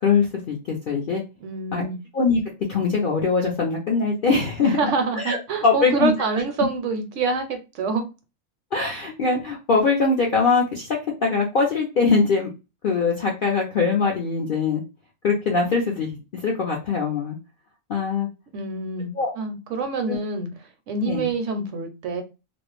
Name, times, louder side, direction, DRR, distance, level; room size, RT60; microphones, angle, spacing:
voice 1, 0.0-1.2 1.7-1.8 2.1-2.4 2.7-4.8 5.2-6.1 8.7-12.5 12.8-14.8 15.2-17.4 17.9-18.3 19.2-19.3 20.1-20.2 21.0-21.3, left 4 dB, 65° left, -1 dB, 0.5 m, -22 dB
voice 2, 1.4-2.0 4.6-8.0 18.5-20.5 20.9-22.2, right 4 dB, 70° right, 6 dB, 0.8 m, -26 dB
2.4 x 2.0 x 2.9 m, 0.28 s
omnidirectional pair, 1.5 m